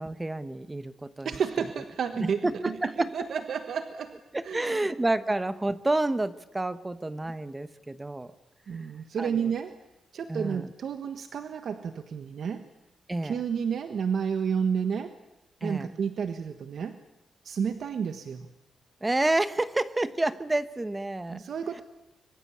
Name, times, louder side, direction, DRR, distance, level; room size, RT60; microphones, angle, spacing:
voice 1, 0.0-1.4 2.1-3.3 4.3-8.3 8.7-8.9 9.2-9.5 10.3-10.7 13.1-13.4 15.6-15.9 19.0-21.4, right 2 dB, 15° right, 12 dB, 1.1 m, -29 dB
voice 2, 1.2-4.2 4.4-4.8 8.7-9.7 10.1-12.6 13.2-15.1 15.6-17.0 17.4-18.5 21.3-21.8, right 7 dB, 60° right, 8 dB, 1.4 m, -31 dB
25.0 x 23.0 x 8.6 m, 0.88 s
wide cardioid pair, 155°, 0 cm